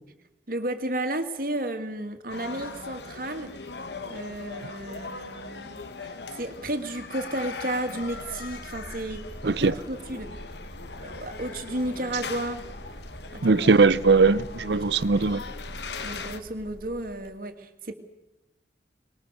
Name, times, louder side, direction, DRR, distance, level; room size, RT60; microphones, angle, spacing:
voice 1, 0.5-3.5 4.1-10.3 11.0-12.7 13.3-13.8 14.5-14.6 14.9-15.0 16.0-17.9, right 1 dB, 55° right, 2.2 m, -33 dB
sound 1, 2.3-16.4, left 4 dB, 75° left, 1.4 m, -40 dB
sound 2, 7.9-17.3, equal, 20° right, 3.7 m, -44 dB
voice 2, 9.4-9.7 13.4-15.4, right 4 dB, 75° right, 0.7 m, -20 dB
24.0 x 21.0 x 6.9 m
head